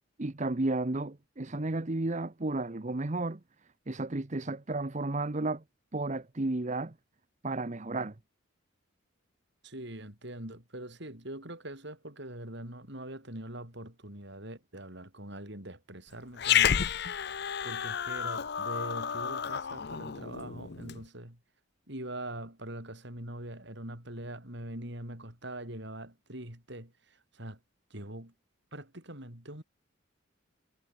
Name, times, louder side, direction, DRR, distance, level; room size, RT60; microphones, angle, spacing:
voice 1, 0.2-3.4 3.9-5.6 5.9-6.9 7.4-8.1, right 2 dB, 35° right, 0.9 m, -32 dB
voice 2, 9.6-16.9 17.2-17.3 17.6-21.4 21.9-26.9 27.3-27.6 27.9-28.3 28.7-29.6, right 1 dB, 60° right, 6.3 m, -43 dB
Growling, 16.4-21.0, left 9 dB, 55° left, 0.7 m, -30 dB
head